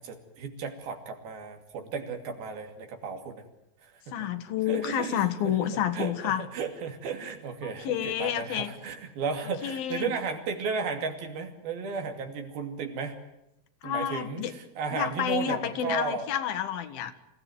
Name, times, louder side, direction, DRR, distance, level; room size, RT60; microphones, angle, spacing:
voice 1, 0.0-3.5 3.8-4.3 4.7-13.2 13.8-16.3, right 5 dB, 85° right, 5 dB, 4.5 m, -34 dB
voice 2, 4.1-6.4 7.6-8.7 9.6-10.1 13.8-14.5 14.9-17.1, left 10 dB, 80° left, 10 dB, 3.4 m, -29 dB
27.0 x 16.5 x 9.4 m, 0.87 s
omnidirectional pair, 4.2 m